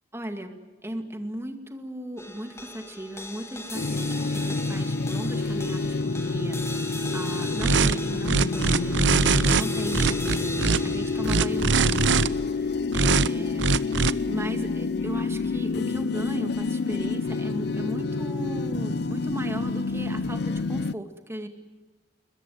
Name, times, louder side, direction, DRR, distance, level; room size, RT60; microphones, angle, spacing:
voice 1, 0.1-0.5 0.8-12.3 12.5-21.5, right 1 dB, 15° right, 6 dB, 2.2 m, -36 dB
sound 1, 2.2-14.7, left 2 dB, 15° left, 2.8 m, -40 dB
sound 2, 3.7-20.9, left 3 dB, 65° left, 0.7 m, -28 dB
sound 3, 7.6-7.9 8.2-9.6 9.9-10.8 11.2-12.3 12.9-13.3 13.6-14.1, right 4 dB, 85° right, 0.8 m, -21 dB
22.0 x 21.5 x 9.4 m, 1.3 s
head